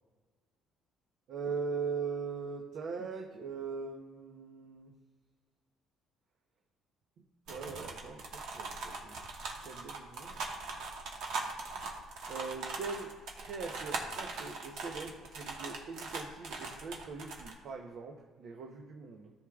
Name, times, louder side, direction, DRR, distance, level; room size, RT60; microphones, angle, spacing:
voice 1, 1.3-4.9 7.5-9.2 9.6-10.4 12.3-13.1 13.3-19.3, right 5 dB, 60° right, 2 dB, 0.8 m, -41 dB
sound 1, 7.5-17.5, right 3 dB, 75° right, 1.4 m, -41 dB
13.5 x 6.3 x 2.4 m, 1.5 s
cardioid pair, 120°, 0 cm